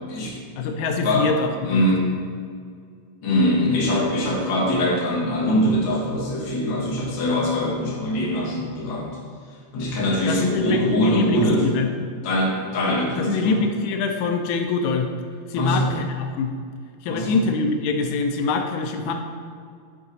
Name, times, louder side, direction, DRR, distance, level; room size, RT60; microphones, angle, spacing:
voice 1, 0.6-1.9 10.3-11.9 12.8-15.1 15.5-16.6 17.0-19.1, left 4 dB, 90° left, 5 dB, 2.0 m, -24 dB
voice 2, 1.7-2.2 3.2-9.1 9.7-11.6 12.2-13.6 15.5-15.9 17.1-17.4, left 1 dB, 45° left, -5 dB, 1.8 m, -22 dB
9.2 x 3.8 x 4.0 m, 2.1 s
omnidirectional pair, 3.3 m